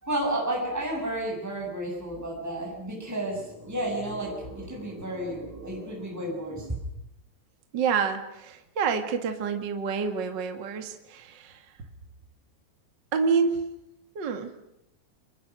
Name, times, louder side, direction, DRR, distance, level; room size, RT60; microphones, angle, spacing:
voice 1, 0.0-6.7, right 1 dB, 5° right, -2 dB, 7.6 m, -32 dB
voice 2, 7.7-11.6 13.1-13.7 14.2-14.5, right 5 dB, 35° right, 6 dB, 2.0 m, -28 dB
29.5 x 25.0 x 6.3 m, 0.83 s
omnidirectional pair, 4.3 m